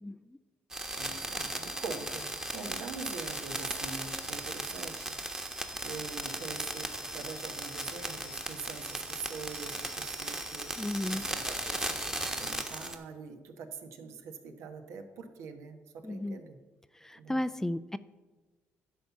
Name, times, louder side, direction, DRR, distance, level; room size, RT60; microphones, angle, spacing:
sound 1, 0.7-13.0, right 1 dB, 15° right, 1.2 m, -37 dB
voice 1, 0.9-5.1 5.8-10.7 11.1-16.6 17.2-17.4, right 5 dB, 80° right, 6 dB, 1.1 m, -44 dB
voice 2, 10.8-11.3 16.0-16.4 17.0-18.0, left 1 dB, 10° left, 15 dB, 0.3 m, -33 dB
11.0 x 4.2 x 7.1 m, 1.2 s
supercardioid pair, 75°, 5 cm